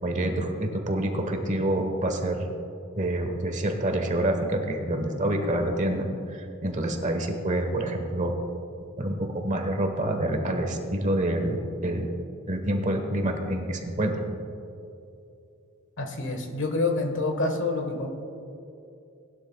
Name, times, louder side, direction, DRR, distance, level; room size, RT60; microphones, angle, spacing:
voice 1, 0.0-2.5 2.9-8.3 9.0-12.1 12.5-14.3, right 1 dB, 35° right, 5 dB, 1.2 m, -27 dB
voice 2, 16.0-18.1, left 3 dB, 60° left, 5 dB, 1.4 m, -27 dB
19.0 x 11.5 x 2.3 m, 2.7 s
head